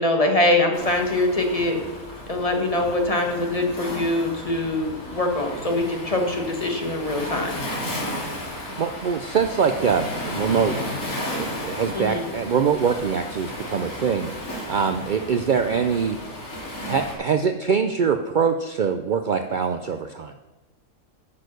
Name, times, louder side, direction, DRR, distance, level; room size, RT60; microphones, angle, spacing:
voice 1, 0.0-1.8 2.3-7.6 11.9-12.3, left 1 dB, 25° left, 3 dB, 1.3 m, -23 dB
Waves surf, 0.7-17.1, left 1 dB, 80° left, 3.1 m, -33 dB
voice 2, 8.8-10.8 11.3-16.5 16.9-20.3, right 6 dB, 75° right, 7 dB, 0.4 m, -24 dB
9.7 x 6.4 x 6.5 m, 1.1 s
omnidirectional pair, 1.5 m